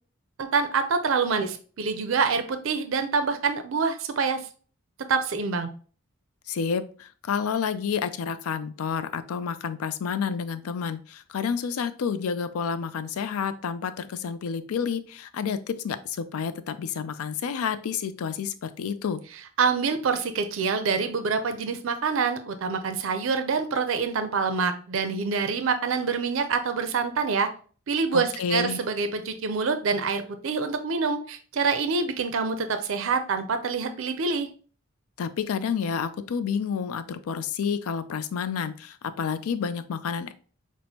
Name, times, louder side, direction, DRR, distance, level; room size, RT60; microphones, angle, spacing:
voice 1, 0.4-4.5 5.1-5.7 19.6-27.5 27.9-34.5, right 5 dB, 65° right, 8 dB, 0.4 m, -26 dB
voice 2, 6.5-19.2 28.1-28.8 35.2-40.3, left 6 dB, 80° left, 12 dB, 0.4 m, -29 dB
6.0 x 2.1 x 2.7 m, 0.40 s
head